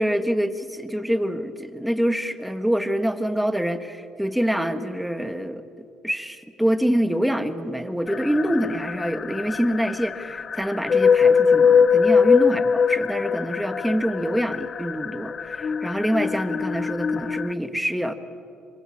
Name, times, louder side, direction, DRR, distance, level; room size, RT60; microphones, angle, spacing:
voice 1, 0.0-5.6 6.0-18.1, equal, 5° right, 9 dB, 1.7 m, -25 dB
sound 1, 8.1-17.5, left 6 dB, 40° left, 0.6 m, -22 dB
26.0 x 23.5 x 8.8 m, 2.6 s
cardioid pair, 95°, 0 cm